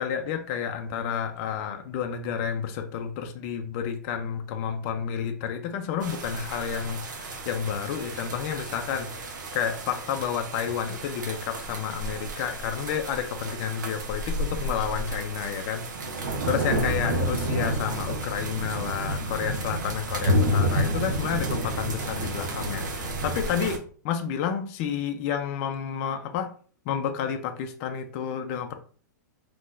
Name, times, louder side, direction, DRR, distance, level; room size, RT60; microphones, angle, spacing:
voice 1, 0.0-26.5 26.9-28.7, left 8 dB, 45° left, 6 dB, 0.5 m, -30 dB
sound 1, 6.0-23.8, right 1 dB, 75° right, 0.9 m, -30 dB
3.7 x 2.9 x 2.5 m, 0.43 s
hypercardioid pair, 120°, 10 cm